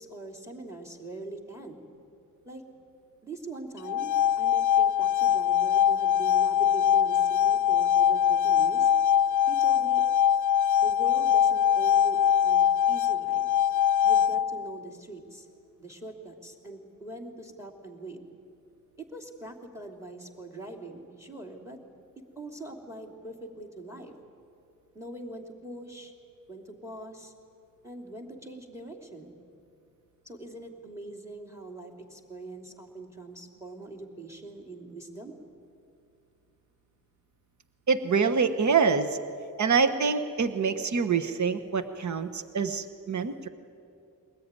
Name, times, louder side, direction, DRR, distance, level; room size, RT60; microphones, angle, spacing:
voice 1, 0.0-1.8 2.4-2.6 3.2-8.9 9.5-10.0 10.8-12.2 12.4-13.5 14.0-15.5 15.8-18.2 19.0-21.8 22.3-24.1 24.9-26.1 26.5-27.3 27.8-29.4 30.2-35.3, right 2 dB, 10° right, 4 dB, 3.1 m, -42 dB
sound 1, 3.8-14.8, left 9 dB, 60° left, 0.5 m, -23 dB
voice 2, 37.9-39.2 39.6-43.5, right 5 dB, 55° right, 9 dB, 1.2 m, -25 dB
22.0 x 19.5 x 9.8 m, 2.6 s
wide cardioid pair, 105°, 35 cm